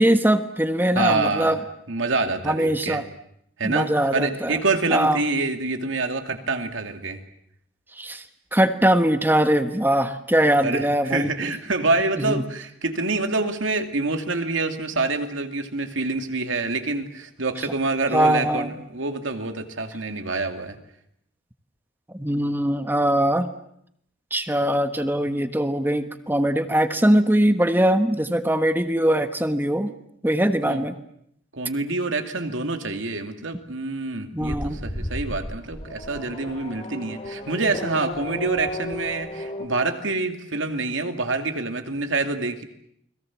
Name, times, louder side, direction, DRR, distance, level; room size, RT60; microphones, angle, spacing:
voice 1, 0.0-1.6 2.4-3.0 3.6-4.6 4.9-5.2 8.0-8.2 8.5-11.3 12.2-12.4 18.1-18.7 22.1-23.5 24.3-29.9 30.2-30.9 34.3-34.8, right 1 dB, 10° right, 8 dB, 1.3 m, -21 dB
voice 2, 1.0-1.6 1.9-3.0 3.6-7.2 10.6-20.8 30.7-30.8 31.5-42.6, right 3 dB, 90° right, 6 dB, 2.5 m, -26 dB
Race car auto racing / Accelerating revving vroom, 34.4-39.7, left 1 dB, 30° left, 2.7 m, -33 dB
30.0 x 21.5 x 7.4 m, 0.73 s
head